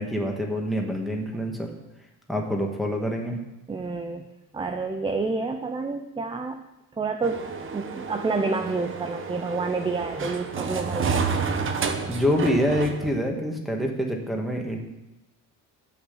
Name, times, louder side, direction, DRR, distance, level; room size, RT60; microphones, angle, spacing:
voice 1, 0.0-1.7 2.3-3.4 10.2-10.3 12.1-14.8, equal, ahead, 1 dB, 2.1 m, -26 dB
voice 2, 3.7-4.2 4.5-6.7 7.0-11.1, right 4 dB, 15° right, 6 dB, 0.7 m, -29 dB
sound 1, 7.2-13.1, right 5 dB, 40° right, 1.2 m, -30 dB
11.5 x 6.3 x 8.8 m, 0.96 s
cardioid pair, 135°, 33 cm